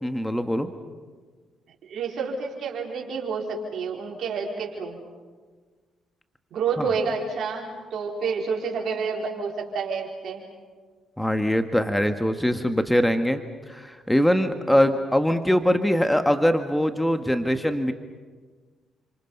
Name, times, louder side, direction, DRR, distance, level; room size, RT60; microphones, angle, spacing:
voice 1, 0.0-0.7 6.8-6.9 11.2-13.4 13.7-17.9, equal, 5° left, 8 dB, 1.6 m, -22 dB
voice 2, 1.8-5.0 6.5-10.4, right 5 dB, 65° right, 0 dB, 4.6 m, -29 dB
29.5 x 26.5 x 5.5 m, 1.5 s
hypercardioid pair, 50°, 0 cm